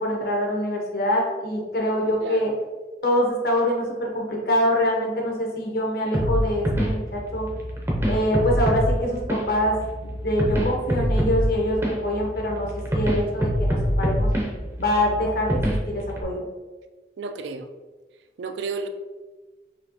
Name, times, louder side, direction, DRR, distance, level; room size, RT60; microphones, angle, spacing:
voice 1, 0.0-2.5 3.0-7.5 8.1-9.7 10.0-14.3 14.8-15.6 15.9-16.5, equal, 60° left, -1 dB, 0.9 m, -24 dB
voice 2, 2.2-2.6 17.2-17.7 18.4-18.9, right 4 dB, 80° right, 8 dB, 0.3 m, -32 dB
sound 1, 6.1-16.2, equal, 15° right, 0.5 m, -25 dB
4.1 x 2.9 x 2.8 m, 1.3 s
head